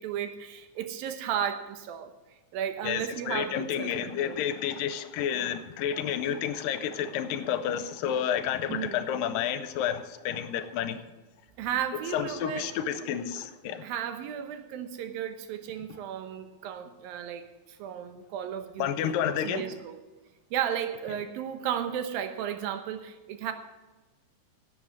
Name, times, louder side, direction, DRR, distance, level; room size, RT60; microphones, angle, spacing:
voice 1, 0.0-2.1 2.5-4.4 8.7-9.0 11.6-12.7 13.8-19.1 19.4-20.0 20.5-23.5, right 9 dB, 85° right, 8 dB, 2.8 m, -34 dB
voice 2, 2.8-11.0 12.1-13.9 18.8-19.6, left 9 dB, 85° left, 11 dB, 2.4 m, -30 dB
11.0 x 7.6 x 7.3 m, 1.2 s
omnidirectional pair, 4.0 m